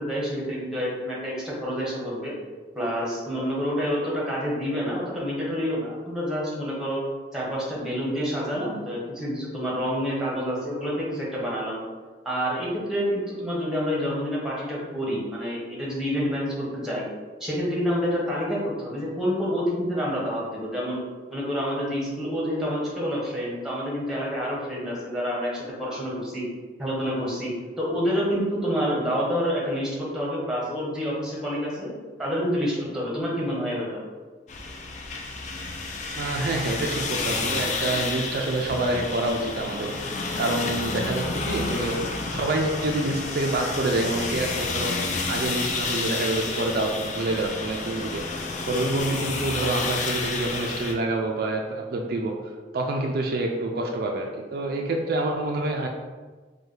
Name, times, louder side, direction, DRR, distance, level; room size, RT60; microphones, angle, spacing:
voice 1, 0.0-2.3 2.7-7.0 7.3-11.8 12.2-17.1 17.4-21.0 21.3-26.4 26.8-31.9 32.2-34.0, equal, 5° right, -5 dB, 1.0 m, -28 dB
sound 1, 34.5-50.9, left 3 dB, 45° left, 0.4 m, -30 dB
voice 2, 36.2-42.0 42.3-45.0 45.3-48.2 48.7-52.4 52.7-55.9, right 2 dB, 60° right, 2 dB, 0.4 m, -27 dB
4.5 x 2.2 x 3.2 m, 1.3 s
head